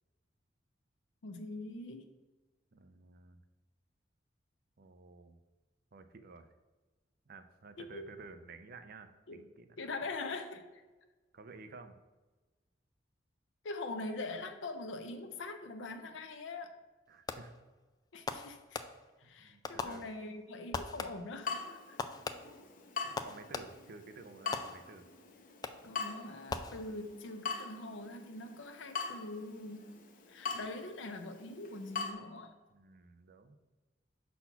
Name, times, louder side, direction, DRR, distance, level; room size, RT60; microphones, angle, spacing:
voice 1, 1.2-2.1 7.8-8.2 9.3-9.4 9.8-10.8 13.6-16.8 18.1-18.8 19.2-22.0 25.8-32.5, left 2 dB, 85° left, 6 dB, 0.6 m, -43 dB
voice 2, 2.7-3.4 4.8-5.4 5.9-6.5 7.3-9.8 10.0-10.1 11.3-11.9 17.1-17.5 19.2-20.0 23.0-25.0 32.7-33.6, right 4 dB, 50° right, 9 dB, 0.5 m, -52 dB
Fireworks, 17.3-17.7 18.3-19.3 19.6-20.4 20.7-21.4 22.0-24.0 24.5-25.1 25.6-26.0 26.5-27.2, left 4 dB, 20° left, 0.3 m, -42 dB
Water tap faucet / Drip, 21.4-32.1, left 5 dB, 45° left, 0.8 m, -43 dB
5.8 x 4.2 x 5.6 m, 1.2 s
head